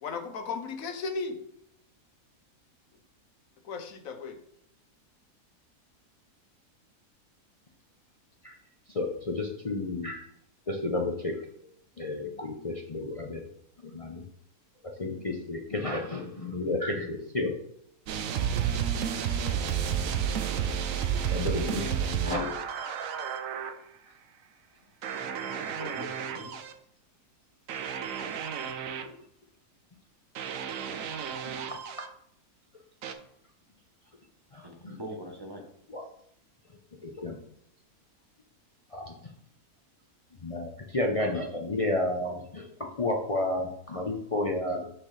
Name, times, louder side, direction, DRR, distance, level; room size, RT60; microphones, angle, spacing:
voice 1, 0.0-1.4 3.6-4.4, left 4 dB, 65° left, 6 dB, 1.2 m, -35 dB
voice 2, 8.9-10.3 10.7-11.4 12.0-13.5 13.8-14.2 15.0-17.5 21.3-22.6 29.0-29.1 31.4-31.8 34.5-35.0 35.9-36.0 37.0-37.4 38.9-39.3 40.4-44.9, left 2 dB, 45° left, 1 dB, 0.4 m, -32 dB
sound 1, 18.1-23.7 25.0-26.7 27.7-29.1 30.4-32.1 33.0-33.1, right 8 dB, 65° right, 1.0 m, -31 dB
voice 3, 25.2-26.5 34.6-35.7, equal, 20° right, 1 dB, 1.0 m, -43 dB
6.3 x 6.0 x 3.3 m, 0.71 s
omnidirectional pair, 1.7 m